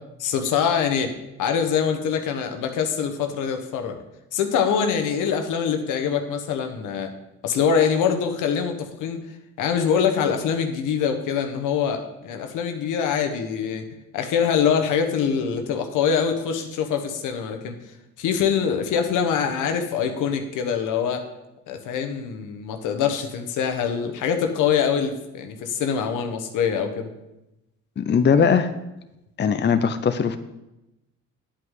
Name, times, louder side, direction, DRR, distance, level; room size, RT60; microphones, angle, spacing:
voice 1, 0.2-1.1 1.4-4.0 4.3-7.1 7.4-9.2 9.6-13.9 14.1-17.8 18.2-21.2 21.7-27.1, left 7 dB, 90° left, 6 dB, 1.2 m, -24 dB
voice 2, 28.0-28.7 29.4-30.4, left 6 dB, 35° left, 10 dB, 0.6 m, -19 dB
10.0 x 8.2 x 3.8 m, 0.93 s
cardioid pair, 90°, 30 cm